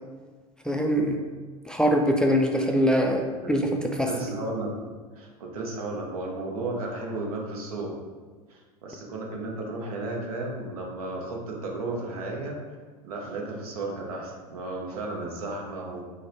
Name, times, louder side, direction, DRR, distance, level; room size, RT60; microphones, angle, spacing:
voice 1, 0.6-1.2 1.7-4.1, equal, 5° left, 2 dB, 0.4 m, -23 dB
voice 2, 4.0-4.7 5.1-8.0 8.5-12.6 13.0-16.0, right 2 dB, 70° right, 0 dB, 0.9 m, -34 dB
4.6 x 2.2 x 4.4 m, 1.5 s
figure-of-eight pair, 80°, 19 cm